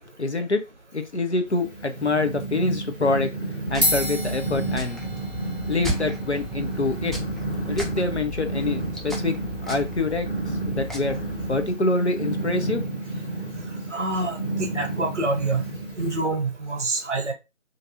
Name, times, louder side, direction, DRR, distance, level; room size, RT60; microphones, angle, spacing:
voice 1, 0.2-0.6 0.9-3.3 3.7-5.0 5.7-7.2 7.7-9.4 9.7-11.2 11.5-12.8, left 2 dB, 55° left, 0.5 m, -25 dB
Purr, 1.5-16.2, right 2 dB, 40° left, 1.4 m, -31 dB
sound 1, 3.7-11.7, equal, ahead, 0.4 m, -35 dB
sound 2, 3.8-12.3, equal, 30° right, 0.7 m, -34 dB
voice 2, 13.9-15.6 16.0-17.3, right 2 dB, 60° right, 0.9 m, -26 dB
2.5 x 2.5 x 2.6 m
figure-of-eight pair, 165°, 40 cm